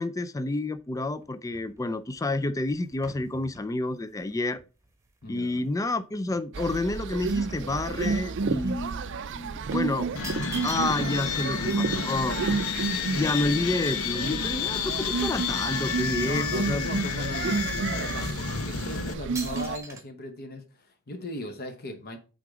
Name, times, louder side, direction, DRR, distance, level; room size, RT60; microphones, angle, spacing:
voice 1, 0.0-4.6 5.3-10.1 10.6-12.4 13.1-16.9, left 2 dB, 15° left, 0.3 m, -29 dB
sound 1, 0.8-5.9 6.3-8.5 8.8-9.0 9.7-11.3 11.6-11.7 11.9-14.0 14.6-14.7 14.9-15.7 16.0-17.2 17.8-17.9 18.6-18.8 19.3-20.0, right 3 dB, 15° right, 1.1 m, -45 dB
voice 2, 5.2-5.7 16.2-22.2, left 2 dB, 45° left, 1.0 m, -38 dB
sound 2, 6.5-19.8, right 4 dB, 55° right, 0.5 m, -31 dB
sound 3, 10.2-19.1, left 6 dB, 75° left, 0.9 m, -31 dB
8.4 x 3.8 x 4.8 m
head